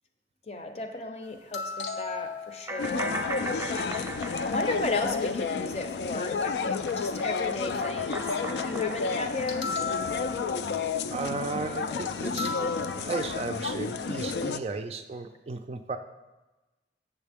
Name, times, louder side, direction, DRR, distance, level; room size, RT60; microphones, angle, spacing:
voice 1, 0.5-3.2 4.4-9.8 10.2-10.3 11.9-12.0, left 2 dB, 35° left, 6 dB, 0.6 m, -35 dB
sound 1, 1.5-2.9 9.5-10.8 11.9-12.1 12.4-13.0, left 5 dB, 90° left, 0.8 m, -35 dB
sound 2, 2.7-6.1 6.4-10.4, right 2 dB, 15° right, 0.7 m, -39 dB
sound 3, 2.8-14.6, left 5 dB, 70° left, 0.3 m, -31 dB
voice 2, 11.1-16.0, right 4 dB, 35° right, 7 dB, 0.3 m, -35 dB
7.4 x 7.3 x 3.5 m, 1.1 s
head